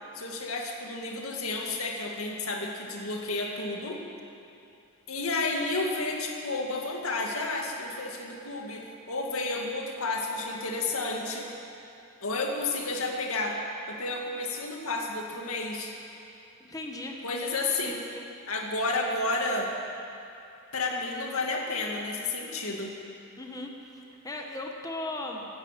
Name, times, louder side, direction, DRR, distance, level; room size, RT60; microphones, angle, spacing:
voice 1, 0.1-4.0 5.1-11.5 12.2-13.6 13.9-15.9 17.2-18.0 18.5-19.7 20.7-22.9, left 2 dB, 80° left, 1 dB, 2.0 m, -31 dB
voice 2, 16.6-17.2 17.8-18.2 23.4-25.5, left 2 dB, 15° left, 1 dB, 1.2 m, -38 dB
16.0 x 11.5 x 7.5 m, 2.7 s
head